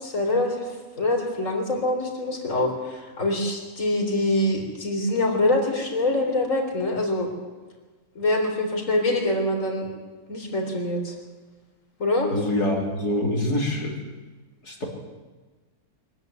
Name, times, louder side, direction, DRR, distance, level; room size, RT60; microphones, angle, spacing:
voice 1, 0.0-7.3 8.2-9.9 10.3-11.2 12.0-12.3, left 1 dB, 55° left, 2 dB, 4.2 m, -25 dB
voice 2, 12.3-14.0 14.6-14.9, left 1 dB, 90° left, -2 dB, 4.3 m, -25 dB
23.5 x 15.0 x 9.4 m, 1.3 s
omnidirectional pair, 1.6 m